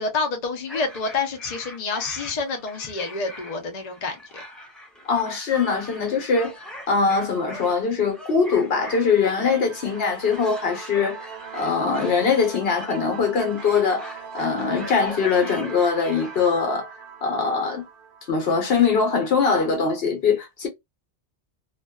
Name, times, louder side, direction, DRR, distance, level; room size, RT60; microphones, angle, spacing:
voice 1, 0.0-4.4, left 4 dB, 45° left, 0.6 m, -28 dB
sound 1, 0.7-16.5, left 1 dB, ahead, 0.5 m, -42 dB
voice 2, 5.0-11.2 11.5-16.9 17.2-17.8 18.3-20.7, left 5 dB, 65° left, 1.0 m, -22 dB
sound 2, 8.9-19.2, right 7 dB, 60° right, 0.7 m, -41 dB
2.5 x 2.2 x 2.2 m
omnidirectional pair, 1.1 m